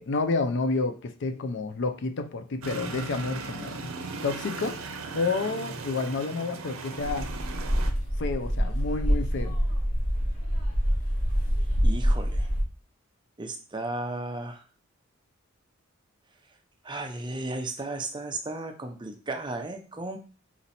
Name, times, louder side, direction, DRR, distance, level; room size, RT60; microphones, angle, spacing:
voice 1, 0.0-3.9 4.2-4.8 5.1-7.3 8.2-9.6, left 3 dB, 60° left, 8 dB, 0.5 m, -29 dB
sound 1, 2.6-7.9, right 4 dB, 80° right, 0.6 m, -37 dB
sound 2, 7.0-12.6, equal, 35° left, 2.1 m, -26 dB
voice 2, 11.8-12.5 13.4-14.6 16.8-20.2, right 2 dB, 20° right, 4 dB, 0.6 m, -34 dB
4.2 x 2.9 x 4.1 m, 0.37 s
head